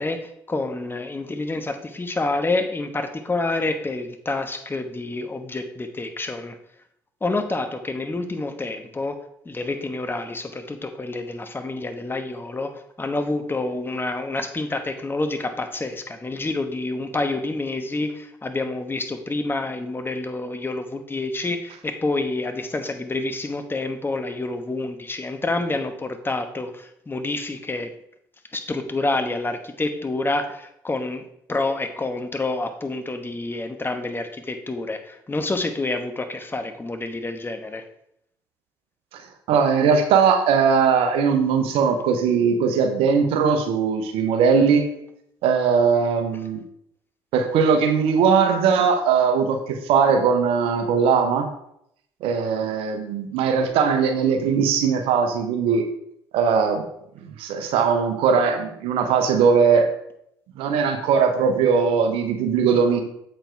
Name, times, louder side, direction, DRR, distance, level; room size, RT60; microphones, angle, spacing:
voice 1, 0.0-6.6 7.2-9.2 9.4-27.9 28.5-37.8, left 2 dB, 20° left, 7 dB, 1.2 m, -28 dB
voice 2, 39.5-44.9 45.4-46.6 47.3-51.5 52.2-55.9 56.3-56.8 57.2-59.9 60.6-63.0, right 6 dB, 70° right, 6 dB, 1.1 m, -20 dB
7.8 x 4.6 x 4.5 m, 0.75 s
hypercardioid pair, 55°, 10 cm